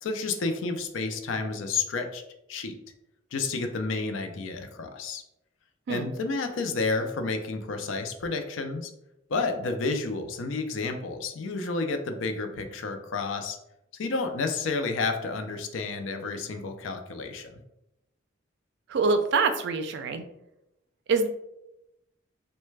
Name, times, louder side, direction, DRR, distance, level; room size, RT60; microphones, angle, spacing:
voice 1, 0.0-2.2 2.5-2.8 3.3-5.2 5.9-8.9 9.3-13.6 13.9-17.5, left 3 dB, 85° left, 6 dB, 0.4 m, -30 dB
voice 2, 18.9-20.2 21.1-21.3, right 4 dB, 60° right, 8 dB, 0.3 m, -25 dB
3.2 x 2.1 x 3.2 m, 0.86 s
head